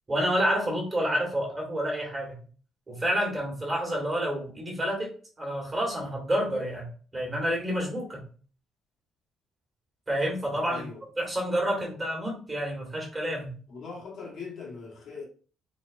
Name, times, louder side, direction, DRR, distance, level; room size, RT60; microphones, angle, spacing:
voice 1, 0.1-2.4 2.9-5.1 5.4-6.8 7.1-8.2 10.1-10.8 11.2-13.6, equal, 15° right, 1.7 m, -29 dB
voice 2, 10.6-11.0 13.7-15.3, left 4 dB, 50° left, 1.3 m, -40 dB
4.2 x 3.9 x 2.5 m
cardioid pair, 175°, 0 cm